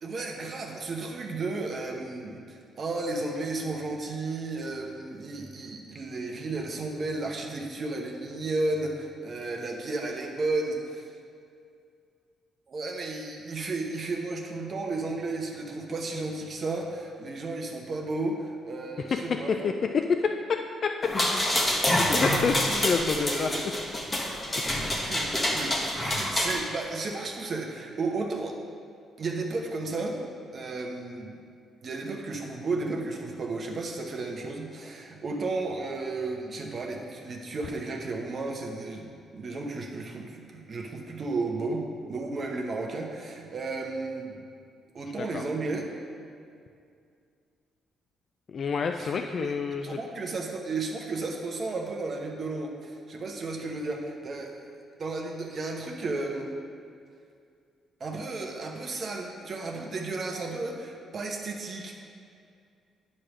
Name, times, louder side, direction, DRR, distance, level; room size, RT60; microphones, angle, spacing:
voice 1, 0.0-11.1 12.7-19.7 22.2-23.7 25.1-28.5 29.2-30.3 30.5-31.4 31.8-44.4 44.9-45.9 49.0-49.5 49.8-54.5 55.0-56.5 58.0-62.0, right 3 dB, 45° right, 1 dB, 1.0 m, -33 dB
voice 2, 19.5-20.9 21.8-22.6 22.8-23.5 24.4-24.8 45.2-45.4 48.5-50.0, left 5 dB, 50° left, 5 dB, 0.3 m, -28 dB
sound 1, 21.0-26.6, left 1 dB, 20° left, 1.3 m, -27 dB
9.8 x 3.3 x 6.1 m, 2.3 s
cardioid pair, 90°, 0 cm